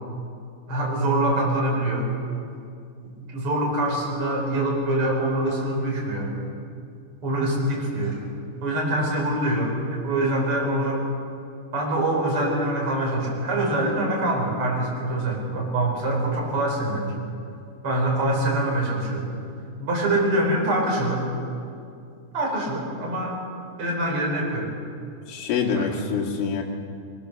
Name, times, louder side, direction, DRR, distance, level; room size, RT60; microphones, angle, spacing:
voice 1, 0.7-2.1 3.2-6.4 7.2-8.2 8.6-11.0 11.7-17.1 17.8-19.3 19.8-21.3 22.3-23.4 23.8-24.7 25.8-25.9, right 1 dB, 30° right, -2 dB, 5.0 m, -24 dB
voice 2, 25.3-26.6, left 5 dB, 75° left, 0 dB, 4.5 m, -25 dB
22.0 x 21.0 x 6.7 m, 2.4 s
omnidirectional pair, 5.6 m